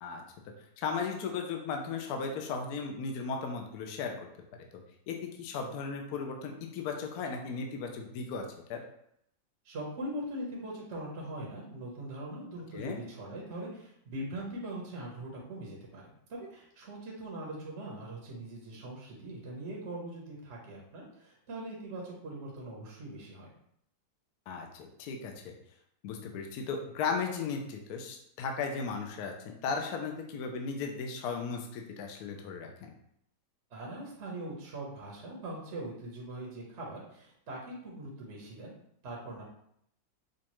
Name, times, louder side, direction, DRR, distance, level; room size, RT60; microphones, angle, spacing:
voice 1, 0.8-4.1 4.7-8.8 12.7-13.0 24.5-25.5 26.0-32.9, left 5 dB, 70° left, 2 dB, 0.9 m, -36 dB
voice 2, 9.6-23.5 33.7-38.7 39.0-39.4, right 1 dB, 50° right, -3 dB, 0.9 m, -41 dB
5.1 x 2.3 x 2.9 m, 0.72 s
omnidirectional pair, 2.1 m